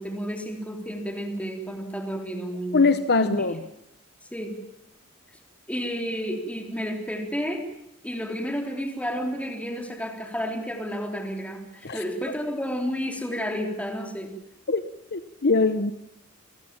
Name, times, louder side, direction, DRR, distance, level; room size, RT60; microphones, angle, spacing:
voice 1, 0.0-2.9 3.2-3.3 4.3-4.6 5.7-7.6 8.0-14.3, equal, 5° left, 3 dB, 3.8 m, -31 dB
voice 2, 2.7-3.6 11.8-12.0 14.7-14.8 15.1-15.9, left 3 dB, 50° left, 11 dB, 0.9 m, -22 dB
29.0 x 15.0 x 7.4 m, 0.83 s
head